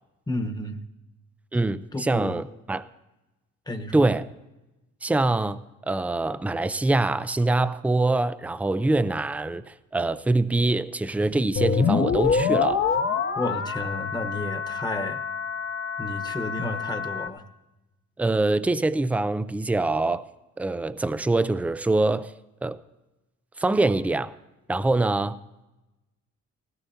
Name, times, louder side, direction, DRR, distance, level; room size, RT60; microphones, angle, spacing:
voice 1, 0.3-0.8 1.9-2.4 3.7-4.0 13.3-15.2 16.0-17.4, left 2 dB, 15° left, 1.1 m, -31 dB
voice 2, 1.5-2.8 3.9-4.3 5.0-5.6 5.9-12.8 18.2-20.2 20.6-22.3 22.6-22.8 23.6-24.3 24.7-25.4, right 2 dB, 5° right, 0.4 m, -24 dB
sound 1, 11.6-17.3, left 6 dB, 45° left, 1.0 m, -26 dB
19.5 x 17.5 x 2.8 m
cardioid pair, 90°, 30 cm